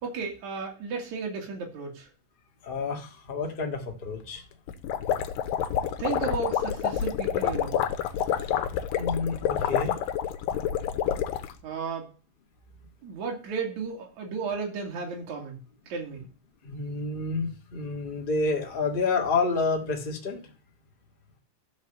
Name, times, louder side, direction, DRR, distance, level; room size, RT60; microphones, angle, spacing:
voice 1, 0.0-2.1 6.0-7.8 11.6-12.1 13.0-15.6 15.9-16.2, right 5 dB, 55° right, 1 dB, 3.4 m, -34 dB
voice 2, 2.6-4.4 9.0-10.0 16.6-20.4, left 4 dB, 45° left, 1 dB, 0.6 m, -29 dB
sound 1, 4.7-11.5, left 9 dB, 75° left, 2.5 m, -28 dB
13.0 x 5.2 x 6.7 m, 0.36 s
omnidirectional pair, 4.1 m